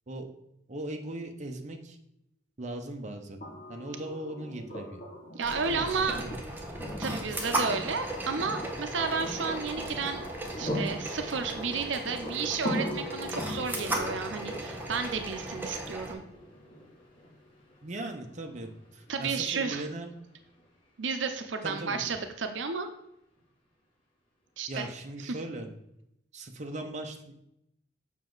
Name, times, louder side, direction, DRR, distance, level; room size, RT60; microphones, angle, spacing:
voice 1, 0.7-2.0 2.6-3.4 3.7-5.0 5.7-6.5 17.8-20.1 21.6-22.0 24.7-25.7 26.3-27.4, right 1 dB, 40° right, 4 dB, 0.8 m, -39 dB
sound 1, 3.4-17.3 19.1-19.2, left 1 dB, 50° left, 2.7 m, -40 dB
voice 2, 5.3-6.2 7.0-10.3 10.6-16.2 19.1-19.8 21.0-22.9 24.6-24.9 25.2-25.4, right 5 dB, 80° right, 7 dB, 0.7 m, -32 dB
sound 2, 5.4-16.1, right 1 dB, 10° right, 1.2 m, -36 dB
Thunder, 7.3-23.1 23.4-24.0 24.4-24.7, equal, 30° left, 2.6 m, -52 dB
7.2 x 5.9 x 3.9 m, 0.80 s
head